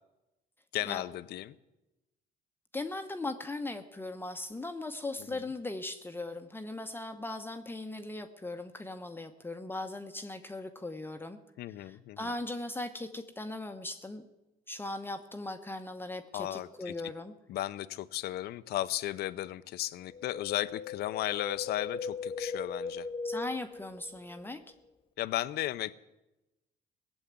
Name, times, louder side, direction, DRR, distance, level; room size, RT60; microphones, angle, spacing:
voice 1, 0.7-1.6 5.3-5.5 11.6-12.3 16.3-16.9 17.5-23.1 25.2-25.9, left 14 dB, 70° left, 15 dB, 0.6 m, -35 dB
voice 2, 2.7-11.4 11.8-14.3 14.7-17.3 23.2-24.6, left 2 dB, 10° left, 7 dB, 0.9 m, -39 dB
Wind, 20.1-24.4 24.7-24.8, left 4 dB, 30° left, 1.2 m, -38 dB
17.5 x 7.2 x 9.4 m, 0.99 s
cardioid pair, 110°, 17 cm